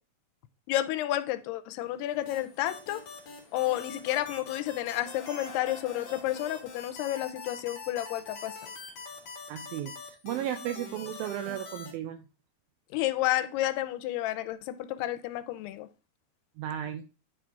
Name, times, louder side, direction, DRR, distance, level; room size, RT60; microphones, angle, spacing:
voice 1, 0.7-3.0 3.5-8.5 12.9-15.9, left 14 dB, 85° left, 2.5 m, -31 dB
sound 1, 1.8-9.4, left 3 dB, 25° left, 2.1 m, -53 dB
sound 2, 2.3-11.9, left 4 dB, 60° left, 1.8 m, -44 dB
voice 2, 9.5-12.2 16.6-17.0, right 11 dB, 85° right, 2.1 m, -35 dB
9.9 x 3.7 x 4.6 m
omnidirectional pair, 4.7 m